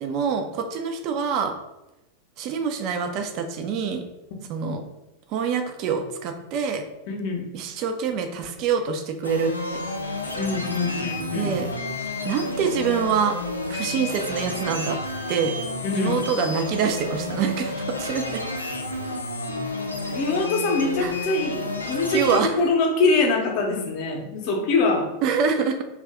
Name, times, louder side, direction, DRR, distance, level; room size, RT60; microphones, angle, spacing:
voice 1, 0.0-1.5 2.4-4.0 4.5-4.8 5.3-6.8 7.5-9.5 11.3-11.7 12.2-13.4 13.7-15.0 15.3-15.5 15.9-18.4 20.0-20.1 21.0-21.1 22.1-22.6 25.2-25.8, right 6 dB, 40° right, 5 dB, 0.4 m, -25 dB
voice 2, 7.1-7.5 10.4-11.5 15.8-16.2 20.1-25.1, left 3 dB, 45° left, 2 dB, 0.6 m, -24 dB
sound 1, 9.2-22.4, left 2 dB, 85° left, 0.4 m, -31 dB
2.6 x 2.3 x 3.4 m, 0.96 s
figure-of-eight pair, 90°, 0 cm